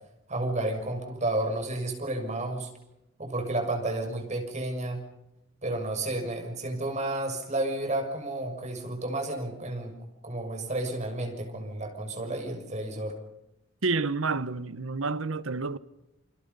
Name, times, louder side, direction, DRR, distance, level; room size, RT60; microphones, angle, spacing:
voice 1, 0.3-2.7 3.2-5.0 5.6-10.0 10.2-13.1, right 2 dB, 35° right, 6.6 m, -31 dB
voice 2, 13.8-15.8, right 4 dB, 80° right, 1.2 m, -29 dB
29.0 x 26.5 x 5.6 m
head